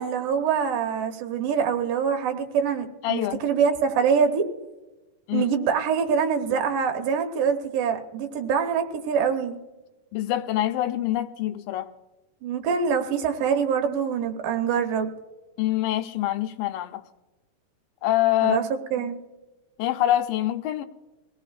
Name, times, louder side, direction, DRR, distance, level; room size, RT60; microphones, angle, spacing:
voice 1, 0.0-4.5 5.3-9.6 12.4-15.1 18.4-18.6 18.9-19.2, right 6 dB, 75° right, 5 dB, 2.7 m, -24 dB
voice 2, 3.0-3.4 5.3-5.5 10.1-11.9 15.6-17.0 18.0-18.6 19.0-19.1 19.8-20.8, left 13 dB, 85° left, 9 dB, 2.4 m, -25 dB
23.5 x 17.0 x 2.5 m, 1.1 s
omnidirectional pair, 4.0 m